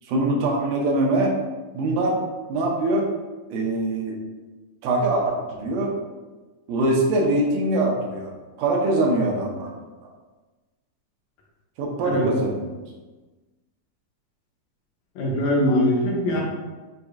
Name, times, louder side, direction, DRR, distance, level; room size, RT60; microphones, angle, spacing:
voice 1, 0.1-1.3 1.7-2.2 2.5-3.1 3.5-4.2 4.8-5.9 6.7-8.3 8.6-9.7 11.8-12.8 16.3-16.4, right 2 dB, 80° right, -1 dB, 2.2 m, -23 dB
voice 2, 15.2-16.4, left 1 dB, 70° left, -4 dB, 2.1 m, -22 dB
6.7 x 2.6 x 2.3 m, 1.2 s
omnidirectional pair, 3.7 m